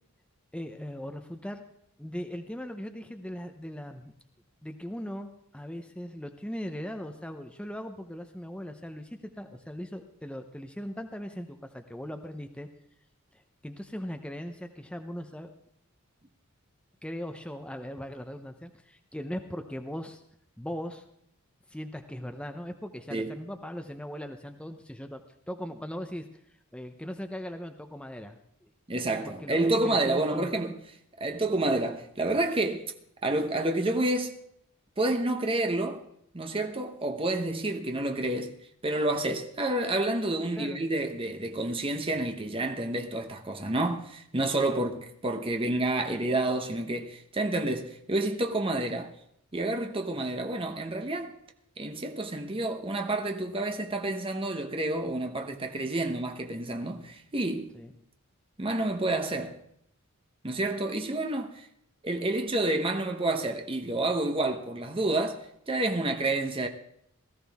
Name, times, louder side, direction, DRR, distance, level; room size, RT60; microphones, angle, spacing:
voice 1, 0.5-1.6 2.0-4.1 4.6-12.7 13.3-15.5 17.0-20.2 20.6-21.0 21.7-25.2 25.5-26.3 26.7-28.7 29.2-30.5 40.5-40.8 44.6-44.8 57.7-57.9, equal, 5° left, 0.7 m, -39 dB
voice 2, 28.9-30.8 31.2-32.8 33.2-34.3 35.0-36.0 36.3-38.5 38.8-49.1 49.5-51.4 51.8-57.7 58.6-59.5 60.4-61.7 62.0-66.7, right 2 dB, 25° right, 1.0 m, -29 dB
18.0 x 14.0 x 3.5 m
head